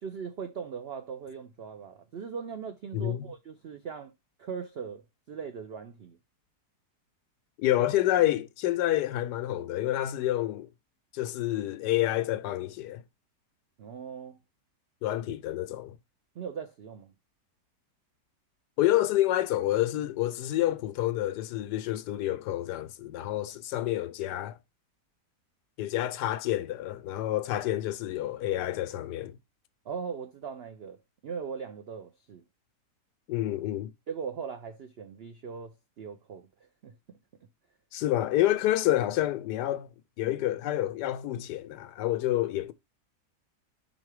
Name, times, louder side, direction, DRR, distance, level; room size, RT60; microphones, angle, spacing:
voice 1, 0.0-4.1 4.4-6.2 13.8-14.4 16.3-17.1 29.8-32.4 34.1-37.2, right 6 dB, 65° right, 0.6 m, -40 dB
voice 2, 2.9-3.2 7.6-10.7 11.1-13.0 15.0-16.0 18.8-24.6 25.8-29.4 33.3-33.9 37.9-39.9 40.2-42.7, left 14 dB, 85° left, 1.3 m, -28 dB
5.2 x 3.9 x 4.7 m
omnidirectional pair, 1.8 m